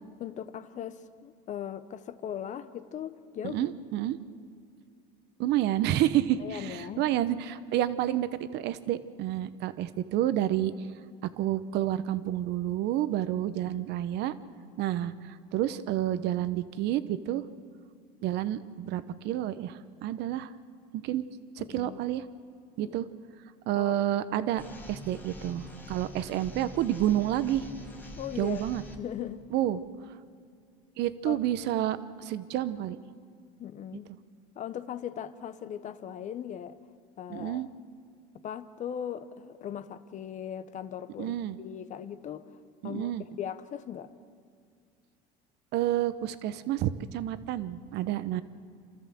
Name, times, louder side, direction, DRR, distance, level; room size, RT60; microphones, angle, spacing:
voice 1, 0.2-3.7 6.4-7.1 21.6-22.0 22.8-23.0 23.7-24.0 28.2-28.6 29.0-29.4 31.3-31.4 33.6-34.1 34.5-36.8 37.2-37.7 38.3-42.5 42.8-43.1 43.4-44.1, left 9 dB, 40° left, 12 dB, 0.9 m, -39 dB
voice 2, 3.4-4.2 5.4-10.7 11.2-14.4 14.8-17.4 18.2-20.5 20.9-21.2 21.6-22.3 22.8-23.0 23.7-24.6 24.9-27.7 28.4-28.8 29.5-29.8 31.0-33.0 37.3-37.7 41.2-41.6 42.8-43.2 45.7-48.4, right 12 dB, 60° right, 14 dB, 0.9 m, -29 dB
sound 1, 24.6-29.0, left 1 dB, 10° left, 2.0 m, -45 dB
28.5 x 13.5 x 7.7 m, 2.2 s
supercardioid pair, 120°, 20 cm